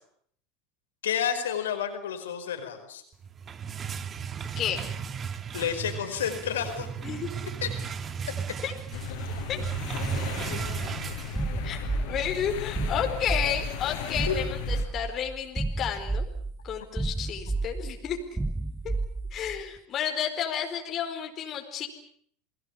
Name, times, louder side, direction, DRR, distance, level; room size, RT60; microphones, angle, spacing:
voice 1, 1.0-3.0 5.5-6.9 7.6-7.7 14.3-14.4, left 8 dB, 85° left, 8 dB, 5.0 m, -30 dB
sound 1, 3.2-11.9, right 7 dB, 30° right, 1.9 m, -35 dB
voice 2, 4.6-4.9 7.0-7.3 8.6-8.7 9.5-9.6 11.6-16.2 16.6-18.2 19.3-21.9, left 9 dB, 40° left, 3 dB, 4.7 m, -31 dB
sound 2, 8.9-14.8, left 10 dB, 65° left, 5.2 m, -37 dB
sound 3, 11.4-19.6, right 2 dB, 10° right, 1.2 m, -32 dB
29.5 x 20.5 x 7.3 m, 0.63 s
hypercardioid pair, 90°, 0 cm